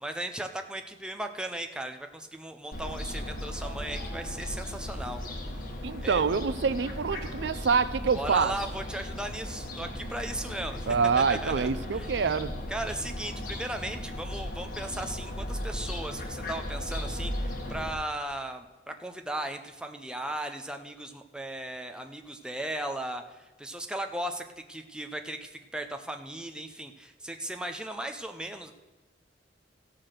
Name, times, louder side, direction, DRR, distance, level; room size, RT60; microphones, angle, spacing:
voice 1, 0.0-5.2 6.0-6.2 8.1-11.7 11.9-12.1 12.7-28.7, right 1 dB, 5° right, 5 dB, 0.6 m, -37 dB
Fowl, 2.7-17.9, left 1 dB, 50° left, 1.6 m, -36 dB
voice 2, 5.8-8.5 10.9-12.5, right 5 dB, 65° right, 14 dB, 0.5 m, -26 dB
15.0 x 5.9 x 6.6 m, 1.2 s
head